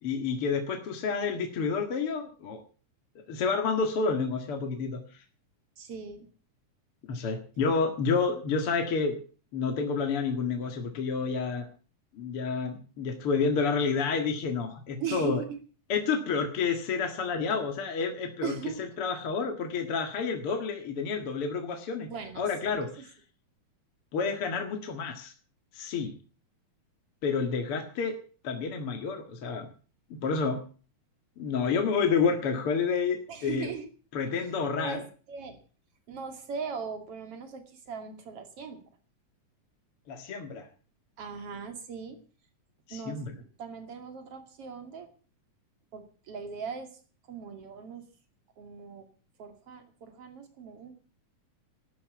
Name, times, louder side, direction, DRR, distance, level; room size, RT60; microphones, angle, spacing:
voice 1, 0.0-2.6 3.3-5.2 7.1-9.2 9.5-11.6 12.1-15.4 15.9-18.5 19.0-22.1 22.4-22.9 24.1-25.3 25.7-26.1 27.2-28.2 28.4-29.7 30.1-30.6 31.4-33.7 34.1-35.0 40.1-40.7 42.9-43.3, left 5 dB, 50° left, 5 dB, 2.5 m, -29 dB
voice 2, 5.8-6.3 15.0-15.6 18.4-18.8 22.1-22.9 33.3-33.9 34.7-35.6 36.1-38.8 41.2-42.2 42.9-45.1 45.9-47.0 47.3-48.1 48.6-49.1 49.4-50.9, right 6 dB, 50° right, 7 dB, 3.3 m, -39 dB
12.5 x 11.5 x 8.3 m, 0.40 s
omnidirectional pair, 3.5 m